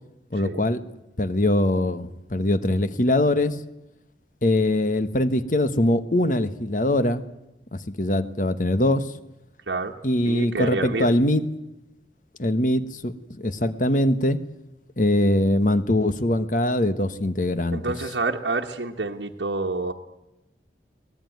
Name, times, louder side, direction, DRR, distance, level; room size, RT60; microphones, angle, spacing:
voice 1, 0.3-0.8 1.2-3.6 4.4-7.2 7.7-9.1 10.0-11.4 12.4-14.4 15.0-17.8, left 1 dB, 45° left, 12 dB, 1.3 m, -22 dB
voice 2, 9.7-10.0 10.2-11.1 17.7-19.9, right 3 dB, 85° right, 1 dB, 1.4 m, -28 dB
24.0 x 19.0 x 9.4 m, 0.92 s
head